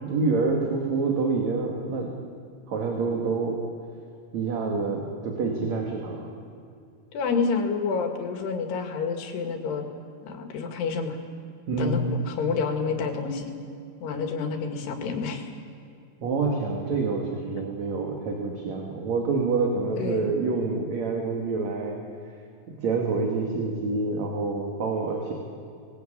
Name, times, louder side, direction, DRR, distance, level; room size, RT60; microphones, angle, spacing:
voice 1, 0.0-2.1 2.7-3.6 4.3-6.3 11.7-12.0 16.2-22.0 22.7-25.3, right 4 dB, 50° right, 1 dB, 3.1 m, -27 dB
voice 2, 7.1-9.8 10.2-11.2 11.8-13.5 14.0-15.5 20.0-20.3, left 5 dB, 90° left, 5 dB, 4.2 m, -28 dB
25.5 x 20.5 x 8.9 m, 2.5 s
omnidirectional pair, 4.6 m